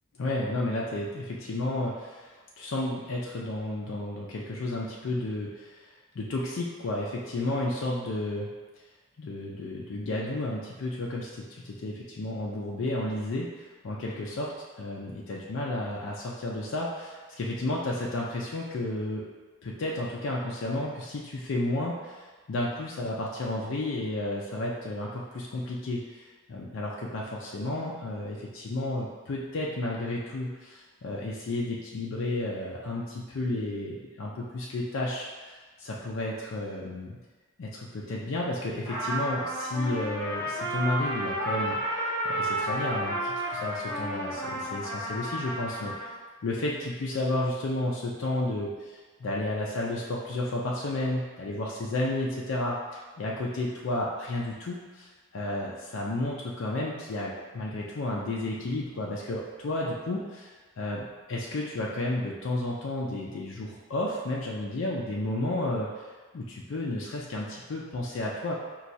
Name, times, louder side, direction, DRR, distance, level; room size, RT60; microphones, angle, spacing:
voice 1, 0.2-5.8 6.2-8.5 9.2-13.5 13.8-14.5 14.8-19.2 19.6-37.2 37.6-41.8 42.2-46.1 46.4-68.5, left 2 dB, 65° left, -4 dB, 0.4 m, -32 dB
Trumpet, 38.8-46.1, right 1 dB, 10° left, 1.0 m, -32 dB
4.2 x 2.3 x 2.6 m, 1.3 s
head